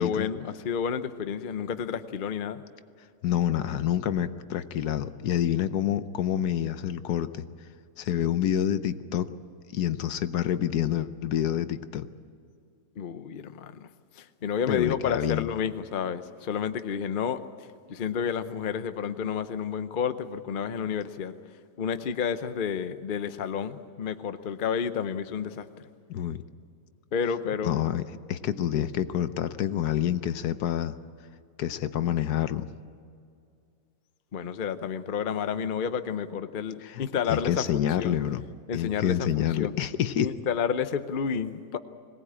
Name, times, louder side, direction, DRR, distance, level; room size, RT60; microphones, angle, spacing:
voice 1, 0.0-2.6 13.0-13.9 14.2-17.4 17.9-21.3 21.8-25.7 27.1-27.8 34.3-38.2 38.7-39.8 40.2-41.8, left 7 dB, 45° left, 11 dB, 0.7 m, -30 dB
voice 2, 3.2-7.4 8.0-9.3 9.7-12.1 14.7-15.5 26.1-26.4 27.6-30.9 31.6-32.7 36.8-37.0 37.3-38.4 38.7-40.3, left 10 dB, 75° left, 12 dB, 1.3 m, -27 dB
21.5 x 18.5 x 8.8 m, 2.3 s
omnidirectional pair, 1.8 m